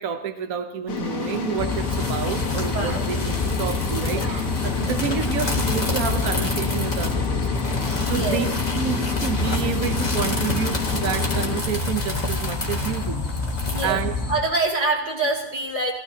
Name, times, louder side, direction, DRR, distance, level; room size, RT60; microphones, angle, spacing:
voice 1, 0.0-8.5 8.7-13.2 13.8-14.1, right 8 dB, 80° right, 7 dB, 1.3 m, -29 dB
sound 1, 0.9-11.6, left 6 dB, 75° left, 1.7 m, -30 dB
sound 2, 1.2-13.9, left 2 dB, 30° left, 1.7 m, -32 dB
sound 3, 1.6-14.4, left 3 dB, 55° left, 1.9 m, -27 dB
voice 2, 2.7-3.0 4.1-4.4 8.0-8.5 13.7-14.0 14.3-15.9, right 2 dB, 35° right, -2 dB, 2.7 m, -25 dB
19.0 x 15.5 x 2.8 m, 0.81 s
omnidirectional pair, 1.5 m